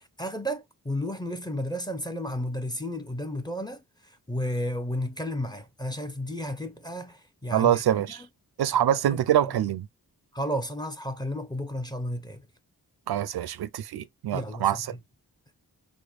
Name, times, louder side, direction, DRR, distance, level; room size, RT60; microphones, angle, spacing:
voice 1, 0.2-3.8 4.3-7.8 8.9-9.2 10.3-12.4 14.3-14.7, equal, 10° left, 0.7 m, -32 dB
voice 2, 7.5-8.2 8.6-9.9 13.1-15.0, right 11 dB, 75° right, 0.5 m, -25 dB
5.0 x 2.2 x 2.3 m
cardioid pair, 65°, 38 cm